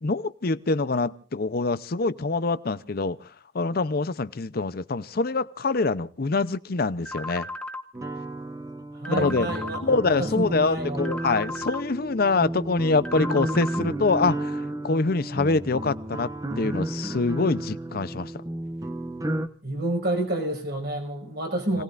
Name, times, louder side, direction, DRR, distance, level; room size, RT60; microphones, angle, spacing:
voice 1, 0.0-3.3 3.5-7.5 9.1-9.5 9.8-16.3 16.6-18.3 21.7-21.8, left 3 dB, 60° left, 14 dB, 0.7 m, -25 dB
sound 1, 7.1-7.8 9.1-9.8 11.1-11.8 13.1-13.8, left 1 dB, 5° left, 1.2 m, -35 dB
sound 2, 7.9-19.5, right 1 dB, 20° right, 1.0 m, -32 dB
voice 2, 8.9-11.0 19.6-21.8, right 1 dB, 65° right, 3 dB, 5.5 m, -29 dB
30.0 x 18.5 x 2.5 m, 0.41 s
head